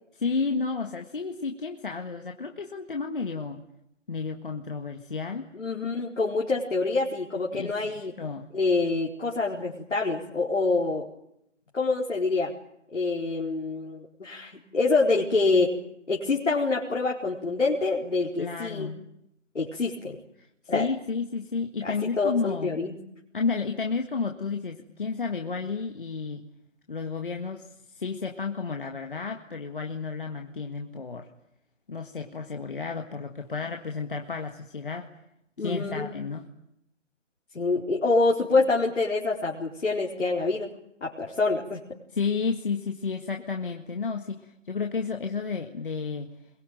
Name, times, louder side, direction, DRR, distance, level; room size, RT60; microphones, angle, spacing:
voice 1, 0.1-3.6 4.1-5.5 7.5-7.7 8.2-8.5 18.4-19.0 20.4-22.8 23.3-26.4 26.9-27.7 27.9-31.3 31.9-35.1 35.6-36.4 42.1-46.3, left 5 dB, 45° left, 4 dB, 1.8 m, -31 dB
voice 2, 5.5-8.1 8.5-11.1 11.7-12.5 12.9-15.8 16.1-18.9 19.5-20.2 20.7-20.9 21.8-22.9 35.6-36.1 37.5-40.7 41.0-41.8, left 3 dB, 70° left, -2 dB, 4.3 m, -26 dB
25.5 x 22.0 x 9.1 m, 0.77 s
hypercardioid pair, 175°, 38 cm